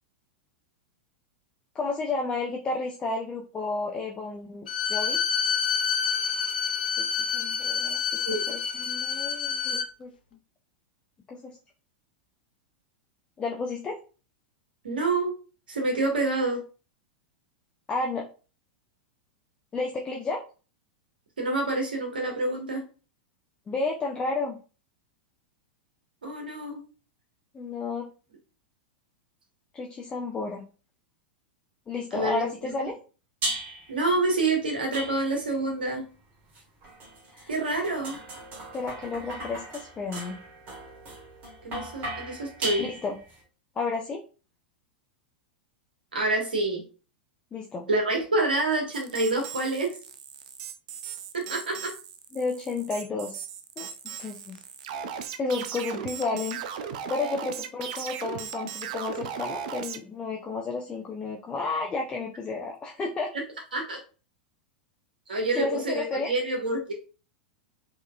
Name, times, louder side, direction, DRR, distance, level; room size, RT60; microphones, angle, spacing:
voice 1, 1.7-5.2 7.0-7.1 7.3-8.0 8.5-10.1 11.3-11.6 13.4-14.0 17.9-18.3 19.7-20.4 23.7-24.6 27.5-28.1 29.7-30.6 31.9-33.0 37.3-37.5 38.7-40.4 42.8-43.2 43.8-44.2 47.5-47.8 52.3-53.4 53.8-54.6 55.4-56.6 57.1-63.3 65.5-66.3, left 3 dB, 20° left, 0 dB, 0.5 m, -32 dB
Bowed string instrument, 4.7-9.9, left 7 dB, 70° left, 0.5 m, -28 dB
voice 2, 14.8-15.3 15.7-16.6 21.4-22.8 26.2-26.8 32.1-32.7 33.9-36.0 37.5-38.2 41.6-42.9 46.1-46.8 47.9-50.0 51.3-51.9 63.7-64.0 65.3-66.9, right 2 dB, 70° right, 2 dB, 1.3 m, -27 dB
sound 1, 33.4-34.0 34.9-35.6 36.5-43.4, right 2 dB, 35° right, 1.4 m, -37 dB
sound 2, 48.9-60.0, right 7 dB, 50° right, 0.4 m, -37 dB
4.5 x 3.0 x 2.3 m, 0.35 s
figure-of-eight pair, 95°, 5 cm